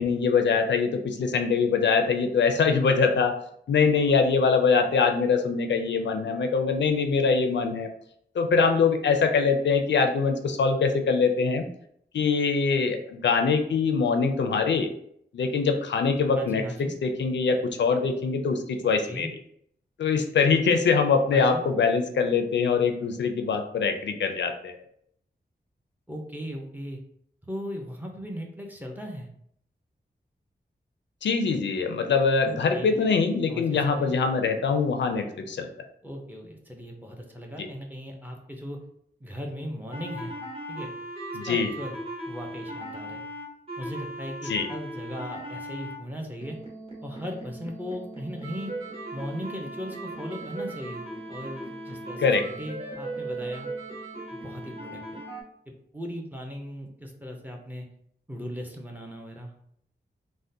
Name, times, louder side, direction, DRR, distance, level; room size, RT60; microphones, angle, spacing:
voice 1, 0.0-3.3 3.7-7.9 8.3-11.7 12.1-14.9 15.3-19.3 20.0-24.8 31.2-35.7 37.6-37.7 41.3-41.7 44.5-44.7 52.2-52.4, left 5 dB, 80° left, 6 dB, 0.4 m, -23 dB
voice 2, 16.4-17.0 19.1-19.3 21.3-21.6 26.1-27.0 27.5-29.3 32.4-33.1 33.5-34.1 36.0-38.8 39.2-40.4 40.7-40.9 41.5-42.0 42.3-43.2 43.8-46.6 47.0-48.7 49.1-53.7 54.3-55.0 55.7-57.9 58.3-59.7, equal, 10° right, 0 dB, 0.5 m, -38 dB
sound 1, 39.9-46.0 46.4-55.4, right 1 dB, 30° right, 0.9 m, -38 dB
3.6 x 2.1 x 2.6 m, 0.69 s
wide cardioid pair, 125°, 18 cm